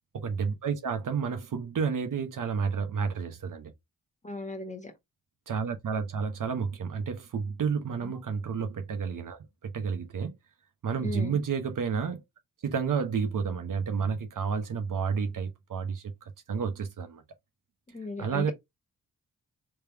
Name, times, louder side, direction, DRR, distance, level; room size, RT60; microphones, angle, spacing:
voice 1, 0.1-3.7 5.5-10.3 10.8-12.2 12.6-17.2 18.2-18.5, right 6 dB, 60° right, 0.9 m, -31 dB
voice 2, 4.2-4.9 8.0-8.1 11.0-11.4 17.9-18.5, left 3 dB, 20° left, 1.5 m, -37 dB
3.4 x 3.3 x 3.3 m
supercardioid pair, 50°, 36 cm